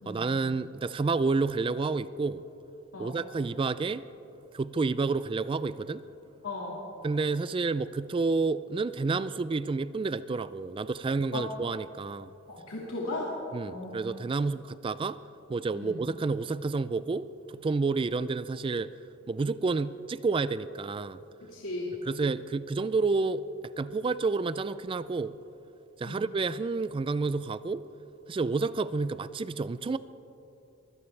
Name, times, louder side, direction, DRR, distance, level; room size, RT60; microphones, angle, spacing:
voice 1, 0.1-2.4 3.0-4.0 4.5-6.0 7.0-12.3 13.5-15.2 15.5-17.3 17.5-18.9 19.3-21.2 22.1-23.4 23.8-25.4 26.0-27.8 28.3-30.0, right 4 dB, 25° right, 15 dB, 0.3 m, -29 dB
voice 2, 6.4-6.9 11.3-11.4 12.5-13.3 13.7-14.1 15.7-16.0 21.4-22.0 26.0-26.3, left 2 dB, 80° left, -5 dB, 2.1 m, -37 dB
23.5 x 16.5 x 3.3 m, 2.9 s
head